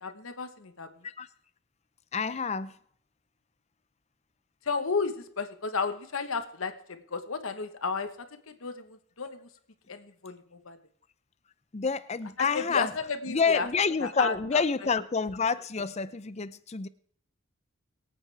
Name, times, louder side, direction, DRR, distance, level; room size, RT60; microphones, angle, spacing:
voice 1, 0.0-0.9 4.7-6.7 7.1-8.1 8.6-9.5 9.9-10.4 10.7-10.8 12.5-13.7 14.0-14.6, left 4 dB, 75° left, 1.1 m, -32 dB
voice 2, 2.1-2.7 11.7-12.9 13.3-16.9, left 5 dB, 30° left, 0.5 m, -28 dB
23.0 x 8.7 x 3.3 m
head